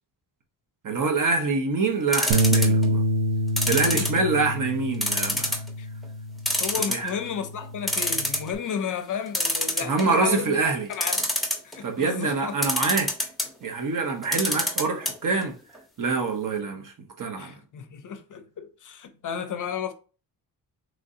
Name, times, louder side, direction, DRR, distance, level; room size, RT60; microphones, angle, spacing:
voice 1, 0.8-3.0 3.7-5.6 6.9-7.1 9.8-10.9 11.8-13.1 13.6-15.5 16.0-17.5, right 4 dB, 50° right, 0.8 m, -25 dB
sound 1, 2.1-2.9 3.6-4.5 5.0-5.7 6.0-6.1 6.5-7.3 7.6-7.7 7.9-8.5 9.3-10.2 10.9-11.8 12.6-13.5 14.2-15.1 15.4-15.5 15.8-15.9, left 1 dB, ahead, 0.7 m, -25 dB
Bass guitar, 2.3-6.8 7.2-8.6, equal, 85° right, 0.6 m, -27 dB
voice 2, 3.7-4.3 5.8-5.9 6.6-11.3 11.6-12.6 17.4-19.9, left 7 dB, 50° left, 0.5 m, -33 dB
3.2 x 2.6 x 3.7 m
wide cardioid pair, 125°, 40 cm